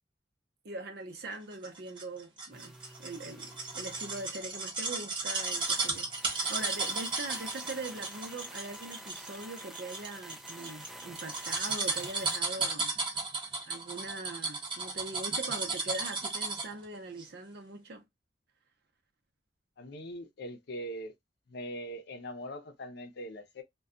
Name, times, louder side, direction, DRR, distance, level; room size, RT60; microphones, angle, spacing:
voice 1, 0.6-2.7 3.0-12.9 13.7-18.0, right 2 dB, 60° right, 0.7 m, -41 dB
sound 1, 1.6-16.8 17.2-17.3, right 3 dB, 30° right, 0.9 m, -34 dB
sound 2, 2.5-12.4, right 1 dB, ahead, 0.3 m, -49 dB
voice 2, 19.8-21.1 21.5-23.6, equal, 65° left, 0.6 m, -41 dB
2.3 x 2.2 x 3.6 m
head